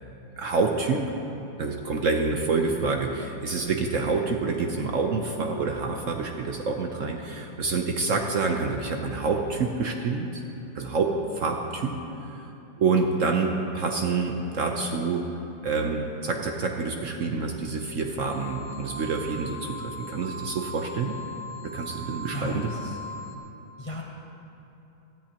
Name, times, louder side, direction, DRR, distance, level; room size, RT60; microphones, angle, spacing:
voice 1, 0.4-1.1 1.6-10.4 10.7-12.0 12.3-12.4 12.8-15.3 15.6-21.2 21.6-22.7, right 4 dB, 60° right, 3 dB, 0.9 m, -27 dB
sound 1, 18.3-23.4, equal, 5° left, 1.1 m, -40 dB
voice 2, 22.0-23.0 23.8-24.0, left 2 dB, 30° left, -1 dB, 0.6 m, -37 dB
18.0 x 13.0 x 2.9 m, 2.9 s
omnidirectional pair, 1.8 m